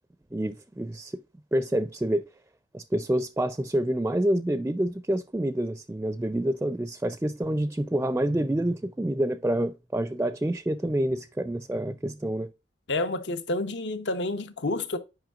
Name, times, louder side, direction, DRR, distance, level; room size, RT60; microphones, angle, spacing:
voice 1, 0.3-1.1 1.5-2.2 2.7-12.5, right 1 dB, 15° right, 0.4 m, -27 dB
voice 2, 12.9-15.0, left 2 dB, 80° left, 1.0 m, -29 dB
8.9 x 5.5 x 2.4 m
head